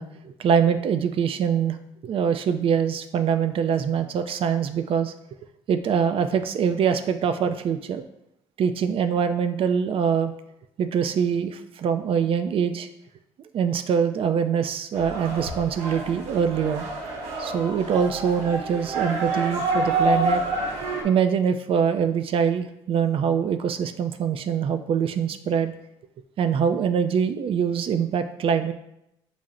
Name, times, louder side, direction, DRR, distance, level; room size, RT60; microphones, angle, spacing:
voice 1, 0.0-1.8 2.0-5.1 5.7-8.0 8.6-10.3 10.8-12.9 13.5-16.9 17.4-20.4 21.0-25.7 26.4-28.7, right 7 dB, 55° right, 9 dB, 0.4 m, -24 dB
sound 1, 14.9-21.0, right 2 dB, 90° right, 0.9 m, -28 dB
5.5 x 2.1 x 3.7 m, 0.81 s
cardioid pair, 80°, 11 cm